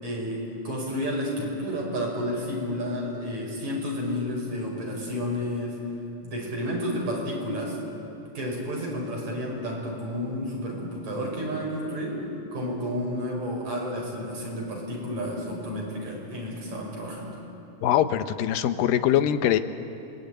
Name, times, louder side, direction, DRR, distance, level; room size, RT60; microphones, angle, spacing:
voice 1, 0.0-5.8 6.2-7.8 8.3-12.2 12.5-17.4, equal, 55° right, -2 dB, 6.8 m, -31 dB
voice 2, 17.8-19.6, left 11 dB, 90° left, 11 dB, 2.6 m, -22 dB
27.0 x 21.0 x 9.3 m, 2.8 s
omnidirectional pair, 3.9 m